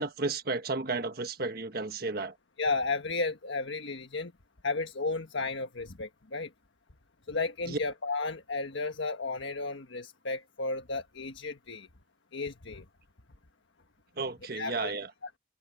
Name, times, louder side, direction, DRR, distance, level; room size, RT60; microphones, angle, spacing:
voice 1, 0.0-2.4 7.7-7.8 14.2-15.1, right 3 dB, 50° right, 1.4 m, -33 dB
voice 2, 2.6-4.3 4.6-6.5 7.3-11.9 12.3-12.8 14.5-14.9 15.2-15.3, left 3 dB, 80° left, 1.4 m, -33 dB
open air
head